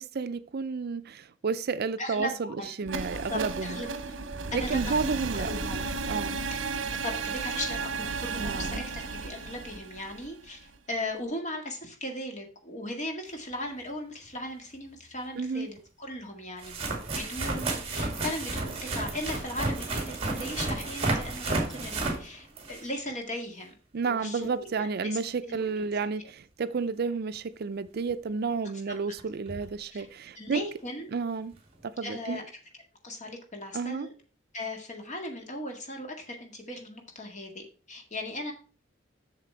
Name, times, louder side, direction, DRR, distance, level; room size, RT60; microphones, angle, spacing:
voice 1, 0.0-3.8 4.5-5.5 6.1-6.4 8.4-8.9 15.4-15.7 23.9-30.6 31.1-31.5 31.8-32.4 33.7-34.1, right 5 dB, 55° right, 0.5 m, -31 dB
voice 2, 2.0-2.8 3.1-4.2 4.5-5.9 6.5-6.6 6.9-16.8 17.0-23.7 24.0-25.2 25.5-25.6 29.9-30.1 30.4-31.1 32.0-32.4 33.0-34.1 34.5-38.5, left 1 dB, 40° left, 1.9 m, -38 dB
sound 1, 2.8-10.8, right 4 dB, 70° right, 0.9 m, -34 dB
sound 2, 14.4-14.5 15.8-15.9 16.6-23.0 28.1-28.2 29.2-29.3 29.5-29.7 31.5-31.6, right 2 dB, 30° right, 2.3 m, -32 dB
7.5 x 6.7 x 4.5 m
head